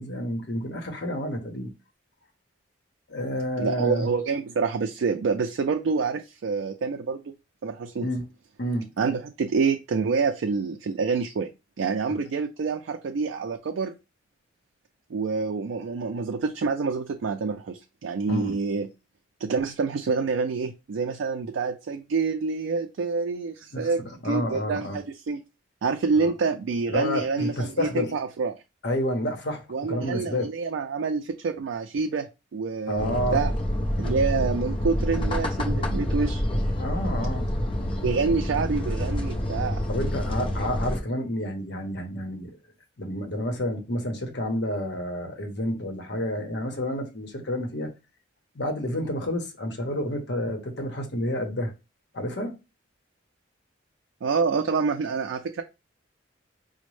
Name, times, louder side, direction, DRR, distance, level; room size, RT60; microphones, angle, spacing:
voice 1, 0.0-1.7 3.1-4.1 8.0-8.2 8.6-8.9 12.1-12.2 18.3-18.6 23.7-25.0 26.1-26.3 26.9-28.1 28.8-30.5 32.9-33.4 36.8-37.5 39.9-42.6 43.0-47.9 48.5-51.7 52.1-52.5, left 1 dB, 60° left, 0.9 m, -29 dB
voice 2, 3.6-7.2 7.6-8.1 9.0-11.5 11.8-13.9 15.1-18.9 19.4-25.4 25.8-28.5 29.7-32.3 32.5-33.5 34.0-36.4 38.0-39.8 54.2-55.6, right 4 dB, 75° right, 0.4 m, -27 dB
sound 1, 33.0-41.0, left 1 dB, 25° left, 0.5 m, -27 dB
5.0 x 2.1 x 3.1 m
head